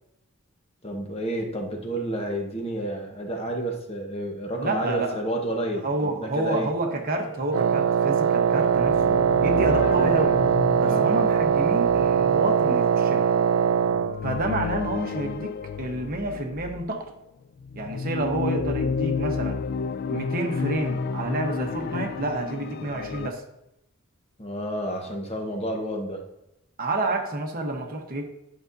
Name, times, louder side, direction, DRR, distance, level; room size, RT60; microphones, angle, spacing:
voice 1, 0.8-6.7 10.8-11.1 24.4-26.2, right 1 dB, 30° left, 2 dB, 1.1 m, -30 dB
voice 2, 4.6-5.2 5.8-10.4 10.8-13.3 14.2-17.1 17.7-19.6 20.1-23.4 26.8-28.3, right 2 dB, 45° right, 3 dB, 1.0 m, -29 dB
sound 1, 7.0-15.2, left 1 dB, 75° left, 2.9 m, -42 dB
Wind instrument woodwind instrument, 7.5-14.2, right 7 dB, 70° right, 0.3 m, -21 dB
sound 2, 8.5-17.0 17.6-23.3, left 5 dB, 50° left, 0.3 m, -31 dB
11.0 x 5.6 x 2.7 m, 0.85 s
head